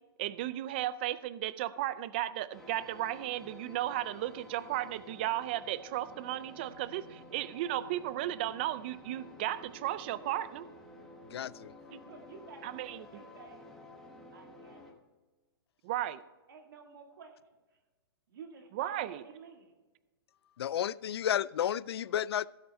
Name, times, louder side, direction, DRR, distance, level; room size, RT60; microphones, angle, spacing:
voice 1, 0.2-10.7 11.9-12.0 12.6-13.1 15.8-16.2 18.7-19.2, right 14 dB, 25° right, 16 dB, 0.4 m, -35 dB
sound 1, 2.5-14.9, left 2 dB, 5° left, 1.2 m, -52 dB
voice 2, 11.3-11.7 20.6-22.5, left 10 dB, 85° left, 20 dB, 0.4 m, -32 dB
voice 3, 12.0-13.7 14.3-14.9 16.5-17.4 17.7-17.8 18.3-19.7, right 5 dB, 60° right, 2 dB, 2.0 m, -52 dB
16.0 x 8.0 x 4.2 m, 1.2 s
hypercardioid pair, 170°, 13 cm